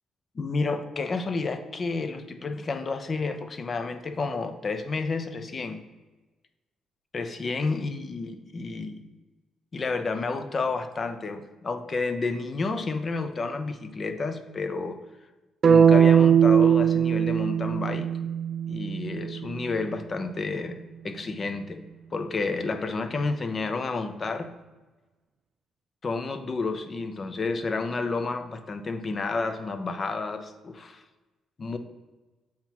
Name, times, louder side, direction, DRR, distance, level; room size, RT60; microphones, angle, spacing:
voice 1, 0.4-5.8 7.1-9.0 9.7-15.0 15.7-18.1 18.7-20.7 21.0-21.8 22.1-24.5 26.0-31.0 31.6-31.8, left 3 dB, 40° left, 9 dB, 0.6 m, -30 dB
sound 1, 15.6-19.7, right 8 dB, 50° right, 0.3 m, -20 dB
7.4 x 3.0 x 5.9 m, 1.2 s
cardioid pair, 90°, 0 cm